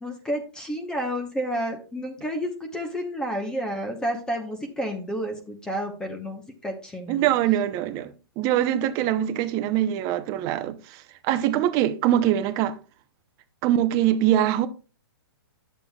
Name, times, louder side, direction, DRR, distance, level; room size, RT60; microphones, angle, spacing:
voice 1, 0.0-7.2, equal, 5° left, 0.8 m, -30 dB
voice 2, 7.1-12.8 13.6-14.7, right 12 dB, 25° right, 0.6 m, -23 dB
10.5 x 7.2 x 2.3 m
hypercardioid pair, 150°, 13 cm